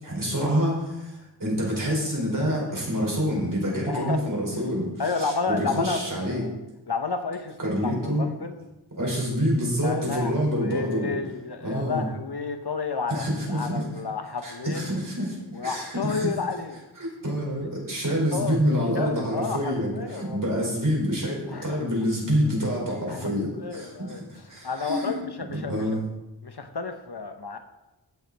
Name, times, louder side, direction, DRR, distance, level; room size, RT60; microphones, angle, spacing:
voice 1, 0.0-4.9 5.2-6.4 7.6-8.2 9.0-11.2 11.6-12.0 13.1-13.8 14.4-16.3 17.2-25.2 25.5-26.0, equal, 45° right, -3 dB, 4.6 m, -27 dB
voice 2, 3.9-4.3 5.0-6.6 6.9-7.6 7.8-8.6 9.8-14.8 15.5-16.8 17.2-17.3 18.3-18.6 18.9-20.6 21.5-21.8 23.1-23.4 23.6-24.2 24.6-26.0 26.4-27.6, left 4 dB, 60° left, 7 dB, 1.0 m, -31 dB
15.5 x 6.5 x 4.1 m, 0.98 s
wide cardioid pair, 60°, 43 cm